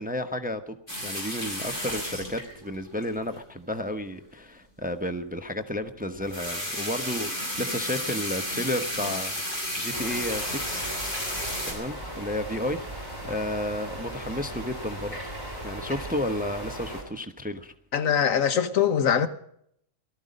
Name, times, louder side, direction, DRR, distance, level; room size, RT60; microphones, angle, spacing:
voice 1, 0.0-9.4 9.8-11.3 11.7-15.3 15.6-17.7, left 1 dB, 10° right, 0.8 m, -32 dB
sound 1, 0.9-3.4 6.2-11.7, equal, 40° left, 5.8 m, -32 dB
sound 2, 9.9-17.0, right 1 dB, 15° left, 4.9 m, -38 dB
voice 2, 17.9-19.3, left 8 dB, 80° left, 1.4 m, -22 dB
18.0 x 13.0 x 5.3 m
omnidirectional pair, 1.4 m